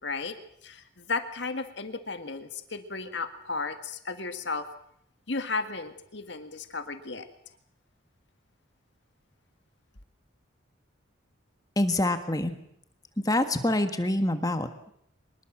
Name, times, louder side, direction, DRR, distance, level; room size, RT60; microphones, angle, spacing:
voice 1, 0.0-0.4 0.6-4.7 5.3-7.3, left 4 dB, 60° left, 8 dB, 1.9 m, -34 dB
voice 2, 11.8-12.5 13.2-14.7, left 1 dB, 20° left, 8 dB, 1.6 m, -26 dB
24.5 x 21.0 x 7.5 m, 0.70 s
head